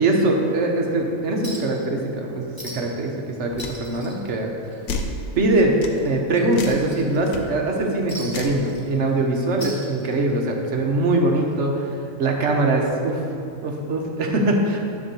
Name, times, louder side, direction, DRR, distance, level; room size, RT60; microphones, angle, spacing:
voice 1, 0.0-4.5 5.3-5.8 6.0-11.9 12.2-13.2 13.6-14.8, right 2 dB, 60° right, 1 dB, 1.2 m, -22 dB
Chink clink, 1.4-1.8 2.1-2.2 2.6-3.0 3.3-5.0 5.4-5.5 6.0-7.4 8.1-9.2 9.5-10.4 11.5-11.6, equal, 15° left, 1.4 m, -39 dB
sound 1, 3.6-3.8 4.9-5.2 5.8-6.0 6.5-6.8 7.3-7.4 8.3-8.6, left 3 dB, 80° left, 1.2 m, -30 dB
11.0 x 3.7 x 6.9 m, 2.5 s
omnidirectional pair, 1.4 m